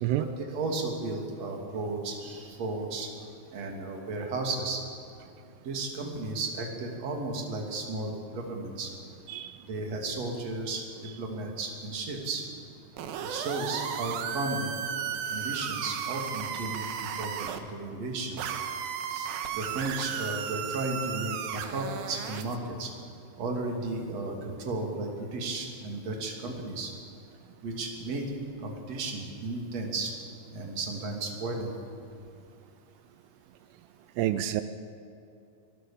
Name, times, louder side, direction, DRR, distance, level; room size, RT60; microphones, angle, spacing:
voice 1, 0.1-3.1 3.5-4.8 5.6-8.9 9.7-10.8 11.2-12.5 13.2-14.7 15.3-18.4 19.1-19.3 19.5-22.9 23.4-26.9 27.6-30.1 30.5-31.7, right 2 dB, 45° right, 1 dB, 3.7 m, -34 dB
voice 2, 9.3-9.6 34.2-34.6, right 13 dB, 85° right, 12 dB, 2.8 m, -28 dB
sound 1, 13.0-17.6 18.4-22.6, right 8 dB, 70° right, 2.9 m, -34 dB
24.5 x 19.0 x 7.2 m, 2.6 s
omnidirectional pair, 4.6 m